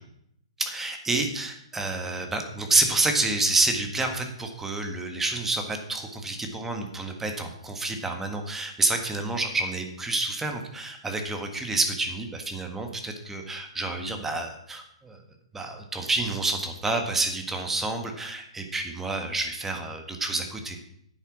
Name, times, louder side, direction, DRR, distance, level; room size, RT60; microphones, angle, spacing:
voice 1, 0.6-15.2 15.5-20.8, right 2 dB, 10° right, 5 dB, 1.5 m, -28 dB
10.0 x 8.2 x 6.1 m, 0.73 s
hypercardioid pair, 135°, 3 cm